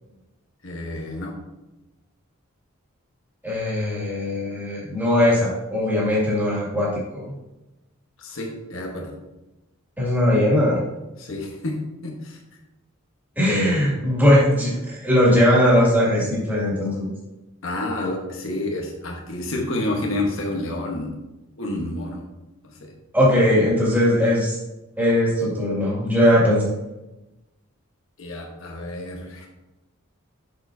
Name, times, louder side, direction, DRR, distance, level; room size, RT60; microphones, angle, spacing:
voice 1, 0.6-1.3 8.2-9.1 11.2-12.4 17.6-21.1 21.6-22.2 22.6-22.9 28.2-29.5, left 1 dB, 65° left, -1 dB, 1.2 m, -29 dB
voice 2, 3.4-7.3 10.0-10.8 13.4-17.1 23.1-24.6 25.0-26.6, left 1 dB, 10° right, -7 dB, 2.4 m, -19 dB
6.9 x 6.5 x 2.7 m, 1.0 s
head